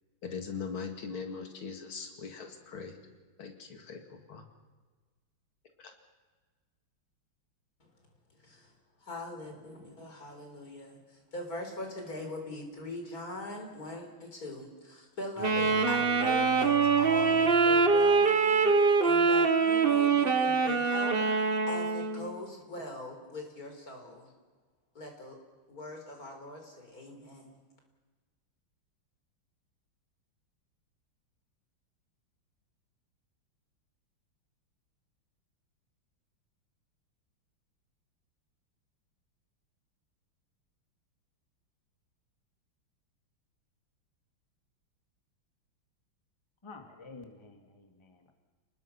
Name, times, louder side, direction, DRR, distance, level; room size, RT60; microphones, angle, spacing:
voice 1, 0.2-3.0 3.4-4.4 5.8-5.9, left 5 dB, 85° left, 5 dB, 2.9 m, -40 dB
voice 2, 9.0-21.2 21.7-24.3 24.9-25.4 25.7-27.6, left 1 dB, 45° left, 3 dB, 4.5 m, -42 dB
sound 1, 15.4-18.8, right 7 dB, 10° right, 3.8 m, -45 dB
Wind instrument woodwind instrument, 15.4-22.3, right 4 dB, 35° right, 1.2 m, -24 dB
voice 3, 46.6-48.3, left 3 dB, 15° left, 4 dB, 2.0 m, -50 dB
30.0 x 20.0 x 5.9 m, 1.3 s
omnidirectional pair, 2.2 m